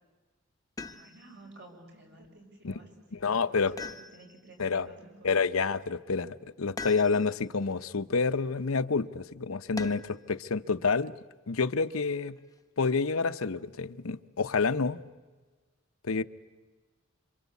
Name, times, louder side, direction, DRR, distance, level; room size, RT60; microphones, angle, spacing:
sound 1, 0.8-1.4 3.8-4.6 6.8-7.5 9.8-10.3 12.0-12.6, left 3 dB, 15° left, 0.9 m, -42 dB
voice 1, 0.8-2.9 3.2-5.5, right 2 dB, 55° right, 6.5 m, -53 dB
voice 2, 3.2-3.8 4.6-4.9 5.2-11.1 11.5-12.4 12.8-15.0 16.0-16.2, left 4 dB, 80° left, 0.8 m, -28 dB
27.0 x 26.0 x 8.4 m
head